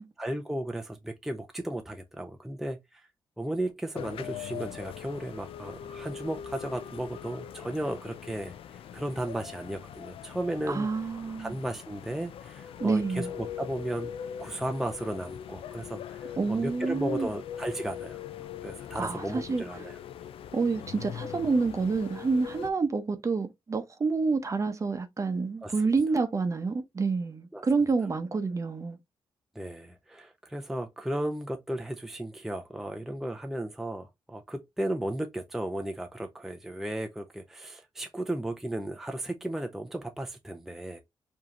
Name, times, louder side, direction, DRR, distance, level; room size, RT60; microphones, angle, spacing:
voice 1, 0.0-3.0 3.4-10.9 11.4-14.1 14.4-18.2 18.6-20.0 25.6-26.3 27.5-28.1 29.6-41.0, right 1 dB, 5° right, 0.5 m, -35 dB
sound 1, 3.9-22.7, left 9 dB, 85° left, 0.4 m, -41 dB
voice 2, 10.7-11.6 12.8-13.3 16.4-17.3 18.9-19.6 20.5-29.0, right 4 dB, 35° right, 0.8 m, -28 dB
4.8 x 2.8 x 3.0 m
cardioid pair, 110°, 9 cm